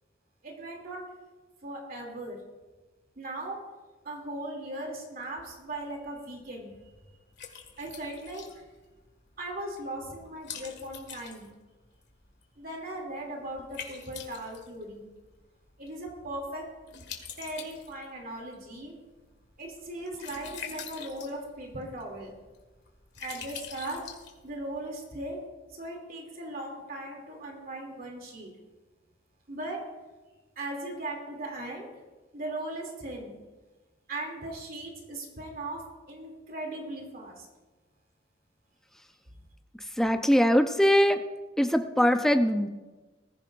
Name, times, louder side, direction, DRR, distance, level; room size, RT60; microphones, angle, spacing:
voice 1, 0.4-1.0 1.6-2.4 3.2-3.6 4.0-6.7 7.8-8.4 9.4-11.5 12.6-15.1 15.8-16.6 17.4-18.9 19.6-22.3 23.2-24.0 24.4-25.4 25.7-28.5 29.5-29.8 30.6-31.9 32.3-33.4 34.1-35.8 36.1-37.5, right 1 dB, 50° right, 0 dB, 2.8 m, -38 dB
Liquid, 5.4-24.9, left 7 dB, 65° left, 2.0 m, -47 dB
voice 2, 40.0-41.2 41.6-42.7, equal, ahead, 6 dB, 0.7 m, -22 dB
20.5 x 14.5 x 2.6 m, 1.2 s
head